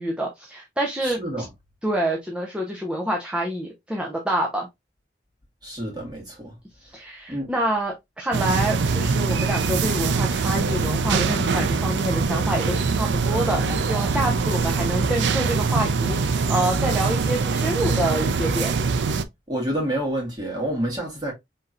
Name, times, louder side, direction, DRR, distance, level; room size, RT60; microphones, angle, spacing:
voice 1, 0.0-1.2 1.8-4.7 6.8-18.8, right 1 dB, 5° right, 0.7 m, -27 dB
voice 2, 1.0-1.5 5.6-6.5 7.3-7.5 19.5-21.3, right 1 dB, 25° right, 1.9 m, -28 dB
sound 1, 8.3-19.2, right 4 dB, 80° right, 0.5 m, -23 dB
4.3 x 3.6 x 2.4 m
head